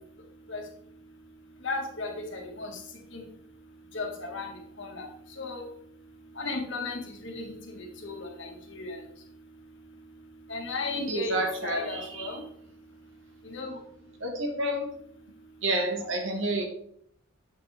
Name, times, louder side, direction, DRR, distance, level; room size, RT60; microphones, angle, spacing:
voice 1, 1.6-2.8 3.1-3.3 3.9-5.1 5.4-5.7 6.4-9.0 10.5-12.4 13.4-13.8, left 3 dB, 55° left, 2 dB, 1.7 m, -35 dB
voice 2, 11.1-12.3 14.2-14.9 15.6-16.7, right 1 dB, 60° right, 3 dB, 1.7 m, -29 dB
8.7 x 6.5 x 3.4 m, 0.66 s
head